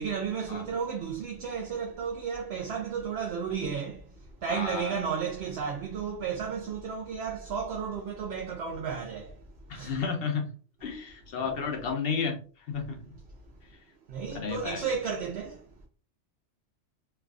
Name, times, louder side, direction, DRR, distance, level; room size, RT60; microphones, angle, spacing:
voice 1, 0.0-9.4 9.7-10.0 11.5-11.8 14.1-15.7, right 6 dB, 60° right, 0.7 m, -33 dB
voice 2, 4.5-5.0 9.7-10.5 10.8-12.4 12.7-13.0 14.3-14.9, left 5 dB, 60° left, 0.7 m, -32 dB
3.4 x 2.3 x 2.3 m
omnidirectional pair, 1.4 m